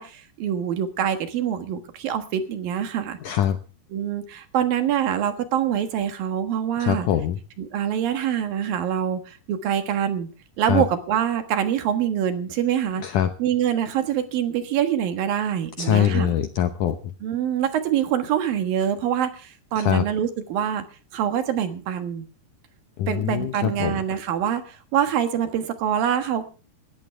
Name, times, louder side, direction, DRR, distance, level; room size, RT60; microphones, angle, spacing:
voice 1, 0.0-3.2 3.9-7.1 7.6-10.3 10.6-13.0 13.4-16.3 17.2-20.8 21.1-22.3 23.1-26.4, right 9 dB, 65° right, 9 dB, 3.0 m, -25 dB
voice 2, 3.2-3.6 6.8-7.4 10.7-10.8 13.0-13.3 15.8-17.1 19.8-20.0 23.0-24.0, left 10 dB, 70° left, 9 dB, 2.0 m, -23 dB
19.5 x 14.5 x 3.4 m, 0.36 s
omnidirectional pair, 4.7 m